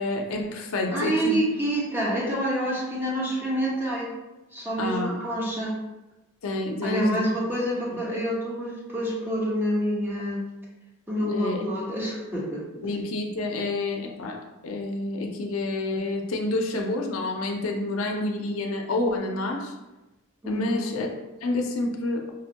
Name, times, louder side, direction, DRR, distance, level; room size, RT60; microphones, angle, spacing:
voice 1, 0.0-1.4 4.8-5.1 6.4-7.2 11.2-11.8 12.8-19.7 20.5-21.1 21.4-22.2, left 2 dB, 70° left, 2 dB, 0.5 m, -28 dB
voice 2, 0.9-4.1 4.5-5.7 6.8-10.5 11.1-12.7 20.4-20.9, equal, 10° right, -5 dB, 0.9 m, -27 dB
5.0 x 2.2 x 2.8 m, 1.0 s
head